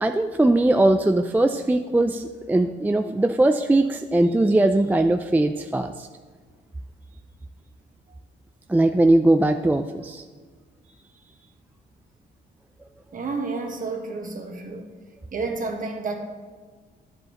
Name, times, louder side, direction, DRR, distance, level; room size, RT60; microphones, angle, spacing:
voice 1, 0.0-6.1 8.7-10.2, right 2 dB, 10° right, 6 dB, 0.3 m, -20 dB
voice 2, 13.1-14.9 15.3-16.2, right 3 dB, 45° right, 3 dB, 1.5 m, -30 dB
10.5 x 7.6 x 3.0 m, 1.5 s
cardioid pair, 90°, 20 cm